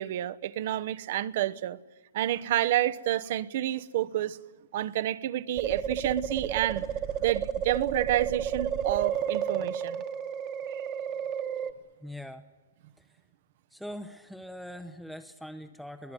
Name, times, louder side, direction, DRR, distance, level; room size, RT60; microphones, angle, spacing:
voice 1, 0.0-1.8 2.1-4.4 4.7-6.8 7.2-10.0, right 13 dB, 50° right, 0.9 m, -29 dB
sound 1, 5.6-11.7, right 8 dB, 30° right, 1.4 m, -31 dB
voice 2, 12.0-12.5 13.0-13.1 13.7-16.1, equal, ahead, 0.8 m, -42 dB
22.0 x 19.0 x 9.9 m
hypercardioid pair, 140°, 0 cm